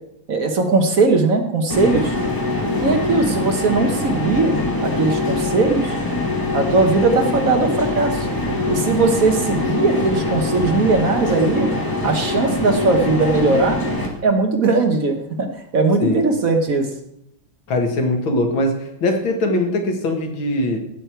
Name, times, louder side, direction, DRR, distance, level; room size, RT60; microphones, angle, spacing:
voice 1, 0.3-2.1 2.8-6.0 6.5-8.3 8.7-11.7 12.0-13.8 14.2-16.9, right 3 dB, 50° right, 5 dB, 1.3 m, -19 dB
sound 1, 1.7-14.1, left 2 dB, 10° left, 1.6 m, -23 dB
voice 2, 17.7-18.7 19.0-20.8, left 2 dB, 85° left, 3 dB, 2.4 m, -21 dB
16.0 x 6.3 x 4.5 m, 0.78 s
omnidirectional pair, 2.1 m